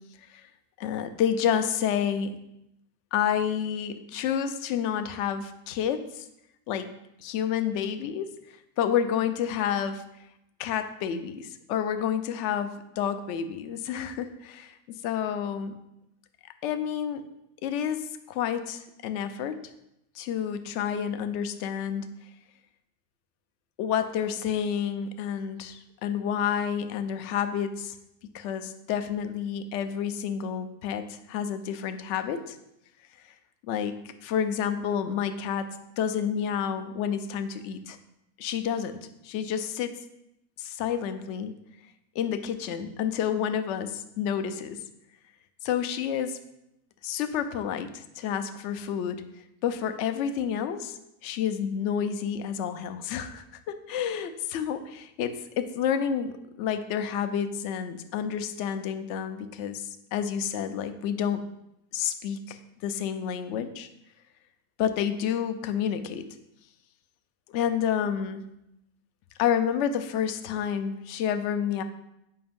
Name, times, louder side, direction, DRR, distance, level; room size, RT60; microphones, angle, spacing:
voice 1, 0.8-2.4 3.1-6.2 6.7-6.9 7.2-8.3 8.8-10.0 10.6-14.7 15.0-15.7 16.6-17.2 17.6-19.6 20.2-22.1 23.8-27.9 28.3-32.6 33.6-35.7 36.0-38.0 38.4-39.9 40.6-41.5 42.2-44.8 45.6-46.4 47.0-49.2 49.6-53.4 53.9-61.4 61.9-63.9 64.8-66.3 67.5-68.4 69.4-71.8, left 8 dB, 65° left, 9 dB, 0.8 m, -29 dB
7.8 x 5.1 x 3.6 m, 0.84 s
omnidirectional pair, 1.6 m